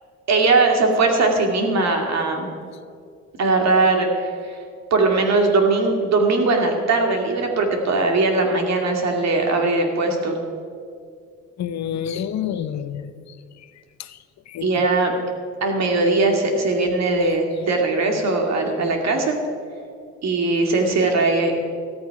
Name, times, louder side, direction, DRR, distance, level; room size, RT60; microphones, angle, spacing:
voice 1, 0.3-2.5 3.4-4.6 4.9-10.4 14.6-15.1 15.6-19.4 20.2-21.5, right 3 dB, 60° right, 2 dB, 2.4 m, -20 dB
voice 2, 11.6-13.4 14.0-14.2 14.5-14.8 16.8-16.9 17.2-17.3 17.6-17.7, left 9 dB, 65° left, 13 dB, 0.7 m, -29 dB
14.5 x 13.5 x 4.9 m, 2.3 s
cardioid pair, 90°, 30 cm